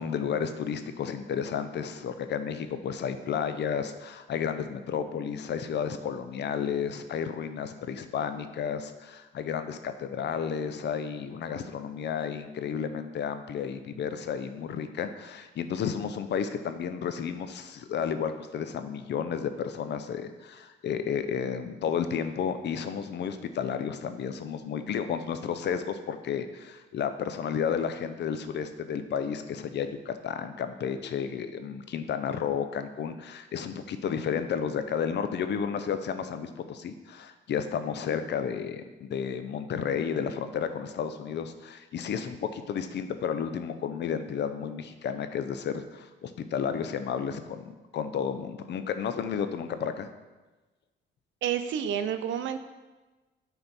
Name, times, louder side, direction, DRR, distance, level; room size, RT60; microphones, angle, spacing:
voice 1, 0.0-50.1, left 7 dB, 60° left, 10 dB, 0.6 m, -32 dB
voice 2, 51.4-52.6, right 9 dB, 75° right, 10 dB, 0.6 m, -29 dB
7.8 x 4.3 x 4.1 m, 1.2 s
cardioid pair, 90°, 20 cm